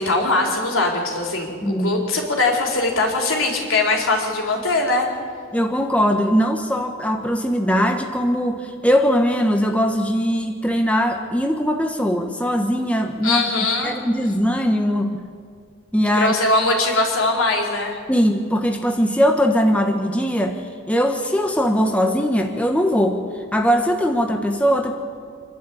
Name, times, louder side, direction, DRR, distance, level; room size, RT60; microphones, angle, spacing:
voice 1, 0.0-5.1 13.2-13.9 16.1-18.0, left 2 dB, 75° left, 0 dB, 4.2 m, -21 dB
voice 2, 1.6-2.0 5.5-13.4 13.8-15.3 15.9-16.3 18.1-20.6 20.9-23.2 23.5-24.9, equal, 5° left, 3 dB, 1.2 m, -20 dB
26.0 x 12.0 x 8.7 m, 2.1 s
head